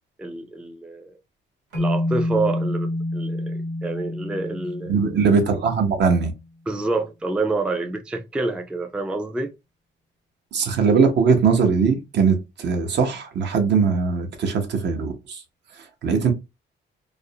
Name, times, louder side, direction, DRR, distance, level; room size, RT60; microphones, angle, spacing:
voice 1, 0.2-1.1 1.7-4.9 6.7-9.5, right 3 dB, 5° right, 0.3 m, -27 dB
sound 1, 1.7-6.0, left 1 dB, 90° right, 1.1 m, -28 dB
voice 2, 4.9-6.3 10.5-15.4 15.7-16.3, right 5 dB, 60° right, 0.7 m, -20 dB
2.4 x 2.0 x 2.7 m
cardioid pair, 90°, 20 cm